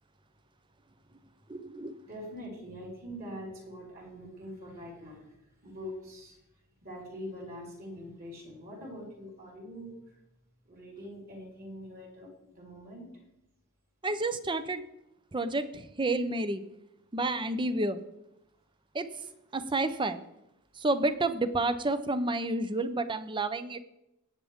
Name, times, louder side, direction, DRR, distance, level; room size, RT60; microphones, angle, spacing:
voice 1, 1.5-2.0 14.0-14.8 15.3-16.6 17.1-18.0 18.9-19.1 19.5-20.2 20.8-23.8, right 2 dB, 20° right, 12 dB, 0.7 m, -30 dB
voice 2, 2.0-6.4 6.8-10.2 10.6-13.2 19.2-19.3, equal, 45° right, -2 dB, 4.7 m, -44 dB
19.0 x 8.4 x 3.6 m, 0.86 s
head